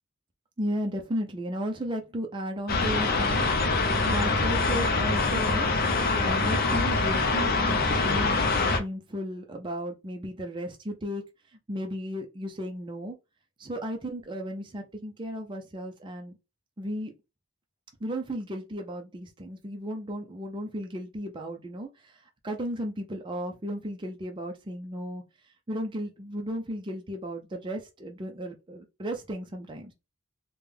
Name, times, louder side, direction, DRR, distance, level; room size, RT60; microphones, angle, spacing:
voice 1, 0.6-11.2 11.7-13.2 13.6-16.4 16.8-17.1 18.0-25.2 25.7-29.9, equal, 20° right, 0.4 m, -35 dB
sound 1, 2.7-8.8, left 3 dB, 40° left, 0.5 m, -24 dB
3.5 x 2.1 x 3.3 m
head